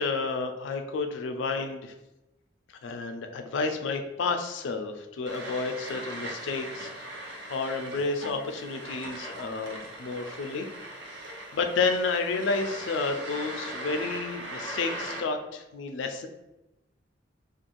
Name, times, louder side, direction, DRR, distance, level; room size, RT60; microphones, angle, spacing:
voice 1, 0.0-1.9 2.8-10.7 11.5-16.3, left 4 dB, 75° left, 6 dB, 0.3 m, -31 dB
sound 1, 5.3-15.2, right 1 dB, 65° right, 0.5 m, -39 dB
2.5 x 2.3 x 3.0 m, 0.97 s
head